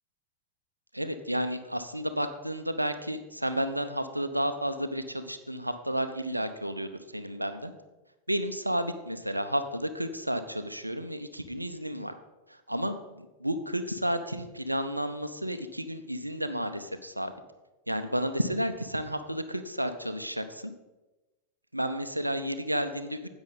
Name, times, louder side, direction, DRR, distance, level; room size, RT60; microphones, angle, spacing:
voice 1, 0.9-7.7 8.3-12.1 12.5-17.3 17.9-20.7 21.7-23.2, equal, 85° right, 10 dB, 0.7 m, -32 dB
10.5 x 8.1 x 4.1 m, 1.1 s
figure-of-eight pair, 90°, 0 cm